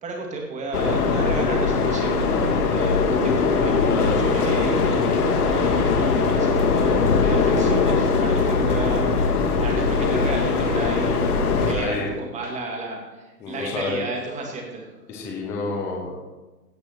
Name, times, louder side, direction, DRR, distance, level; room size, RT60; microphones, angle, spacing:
voice 1, 0.0-11.2 11.7-14.9, right 2 dB, 15° right, 1 dB, 2.2 m, -33 dB
sound 1, 0.7-11.7, left 4 dB, 60° left, 2.1 m, -21 dB
voice 2, 2.8-3.2 3.9-4.6 11.7-12.1 13.4-14.0 15.1-16.2, left 3 dB, 5° left, -1 dB, 0.5 m, -30 dB
16.5 x 6.2 x 5.9 m, 1.2 s
hypercardioid pair, 145°, 50 cm